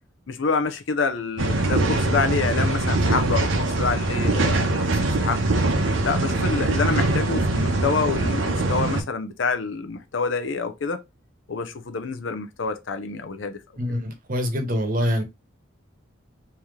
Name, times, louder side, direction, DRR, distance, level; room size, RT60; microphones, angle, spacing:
voice 1, 0.3-4.7 5.2-5.6 6.0-11.0 11.5-13.6, left 4 dB, 70° left, 0.6 m, -27 dB
sound 1, 1.4-9.0, right 2 dB, 80° right, 0.8 m, -22 dB
voice 2, 13.8-15.2, equal, 45° right, 1.0 m, -25 dB
3.2 x 2.8 x 3.6 m
head